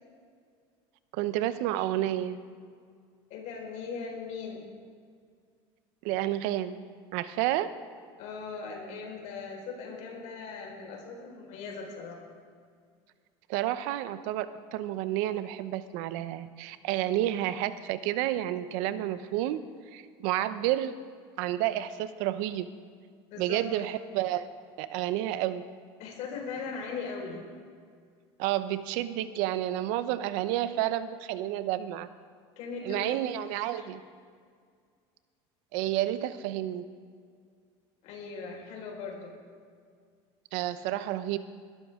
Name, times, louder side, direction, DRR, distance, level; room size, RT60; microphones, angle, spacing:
voice 1, 1.1-2.4 6.0-6.8 7.1-7.7 13.5-19.6 19.9-21.0 21.4-22.7 23.4-24.5 24.8-25.6 28.4-32.1 32.8-34.0 35.7-36.8 40.5-41.4, right 13 dB, 75° right, 13 dB, 0.8 m, -30 dB
voice 2, 3.3-4.6 8.2-12.2 23.3-23.7 26.0-27.4 32.6-33.2 33.7-33.8 38.0-39.4, left 5 dB, 65° left, 0 dB, 4.6 m, -39 dB
21.0 x 12.5 x 3.7 m, 2.1 s
supercardioid pair, 105°, 13 cm